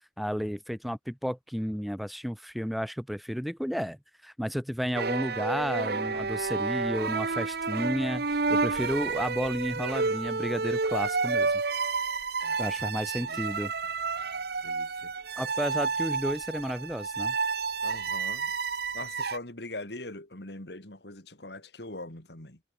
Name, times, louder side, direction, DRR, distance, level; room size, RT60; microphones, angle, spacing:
voice 1, 0.2-4.0 4.2-11.5 12.6-13.7 15.4-17.4, equal, ahead, 1.4 m, -32 dB
sound 1, 4.9-19.4, right 4 dB, 60° right, 1.1 m, -30 dB
voice 2, 14.6-15.1 17.8-18.5 18.9-22.6, left 2 dB, 65° left, 3.5 m, -42 dB
head